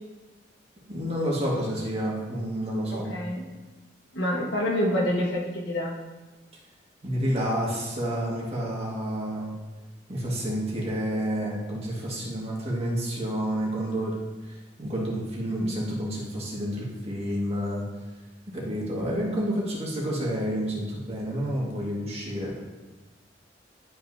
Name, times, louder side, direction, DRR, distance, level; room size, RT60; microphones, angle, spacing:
voice 1, 0.9-3.1 7.0-9.5 10.1-14.1 14.5-17.8 18.5-22.6, equal, 35° right, -4 dB, 1.8 m, -29 dB
voice 2, 2.9-3.5 4.1-5.9, left 1 dB, 80° left, -2 dB, 1.5 m, -27 dB
11.5 x 5.5 x 2.7 m, 1.2 s
head